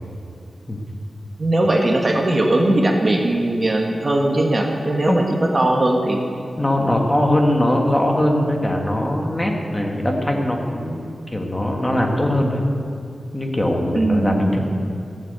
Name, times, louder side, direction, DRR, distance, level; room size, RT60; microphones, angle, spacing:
voice 1, 1.4-5.2 5.5-6.2 13.9-14.6, right 1 dB, 40° right, 1 dB, 1.7 m, -19 dB
voice 2, 6.6-12.6 13.3-14.6, left 1 dB, 20° left, 1 dB, 1.7 m, -21 dB
15.0 x 7.4 x 8.1 m, 2.5 s
wide cardioid pair, 85°, 0 cm